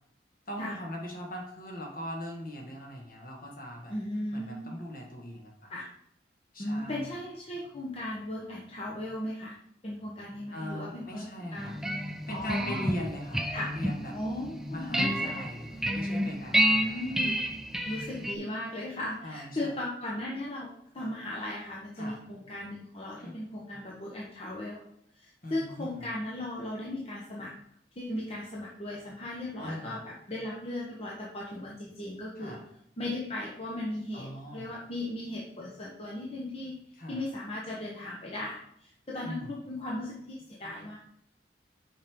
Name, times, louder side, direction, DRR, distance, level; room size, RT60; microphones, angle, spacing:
voice 1, 0.5-3.9 4.3-5.7 6.5-7.1 10.5-11.8 12.3-14.2 14.7-17.2 19.2-19.7 22.0-22.3 23.2-23.3 25.4-25.9 29.6-30.0 32.4-32.6 34.1-34.7 36.9-37.3 39.2-39.5, equal, 50° left, -1 dB, 1.8 m, -41 dB
voice 2, 3.9-4.7 5.7-5.9 6.6-9.6 9.8-11.7 12.3-12.9 13.5-13.7 14.1-15.3 16.5-17.4 17.9-24.8 25.1-27.5 28.0-32.5 33.0-36.8 37.1-41.0, left 1 dB, 35° left, -4 dB, 0.9 m, -36 dB
sound 1, 11.6-18.4, equal, 5° right, 0.4 m, -30 dB
6.2 x 5.2 x 3.7 m, 0.72 s
head